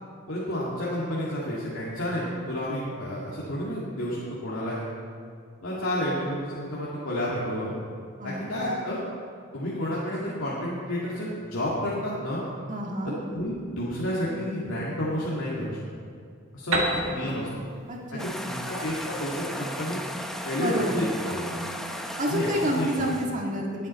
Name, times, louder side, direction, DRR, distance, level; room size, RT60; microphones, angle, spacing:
voice 1, 0.3-4.9 5.6-7.9 8.2-9.0 9.5-12.4 13.0-15.8 16.5-17.5 18.1-20.0 20.4-21.4 22.3-23.1, left 1 dB, 80° left, -7 dB, 2.0 m, -30 dB
voice 2, 8.2-9.0 12.7-13.2 16.7-17.5 17.9-18.6 20.6-21.7 22.2-23.9, equal, 40° right, -1 dB, 1.8 m, -30 dB
Piano, 16.7-20.4, right 2 dB, 75° right, 1.7 m, -32 dB
sound 1, 18.2-23.3, equal, ahead, 0.7 m, -36 dB
20.5 x 7.7 x 4.2 m, 2.3 s
head